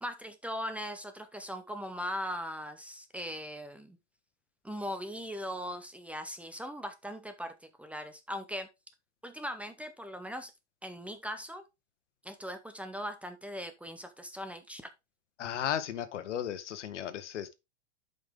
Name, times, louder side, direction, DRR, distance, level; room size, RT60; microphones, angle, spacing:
voice 1, 0.0-4.0 4.6-7.5 7.8-8.7 9.2-10.5 10.8-11.6 12.2-14.8, equal, 5° right, 0.6 m, -39 dB
voice 2, 15.4-17.5, left 10 dB, 80° left, 1.2 m, -35 dB
8.7 x 5.4 x 3.6 m
hypercardioid pair, 130°, 35 cm